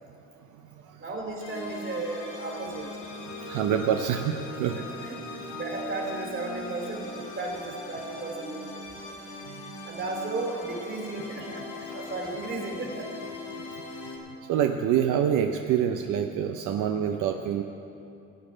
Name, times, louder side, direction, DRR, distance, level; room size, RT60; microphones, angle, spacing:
voice 1, 1.0-2.9 4.6-8.8 9.8-13.1, right 2 dB, 45° right, 0 dB, 3.1 m, -35 dB
sound 1, 1.4-14.2, left 2 dB, 80° left, 2.4 m, -40 dB
voice 2, 3.4-4.8 5.4-5.5 9.4-9.5 11.9-12.1 14.5-17.6, right 9 dB, 85° right, 5 dB, 0.6 m, -26 dB
16.0 x 8.7 x 5.0 m, 2.7 s
cardioid pair, 90°, 30 cm